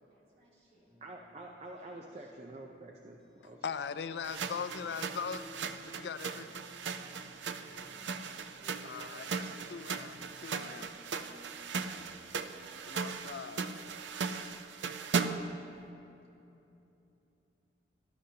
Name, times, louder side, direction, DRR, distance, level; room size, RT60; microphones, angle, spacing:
voice 1, 0.0-0.9 1.8-2.5 4.6-4.8 7.0-9.1, right 1 dB, 60° right, -6 dB, 3.1 m, -64 dB
sound 1, 0.7-10.7, left 1 dB, ahead, 2.8 m, -63 dB
voice 2, 1.0-3.6, right 2 dB, 35° right, 1 dB, 0.6 m, -47 dB
voice 3, 3.6-5.4 5.8-6.5 8.8-10.9 12.9-13.8, left 6 dB, 75° left, 12 dB, 0.4 m, -40 dB
sound 2, 3.6-14.3, equal, 15° right, 2.3 m, -57 dB
sound 3, 4.2-15.6, right 5 dB, 90° right, 0.5 m, -38 dB
19.5 x 11.5 x 2.8 m, 2.9 s
head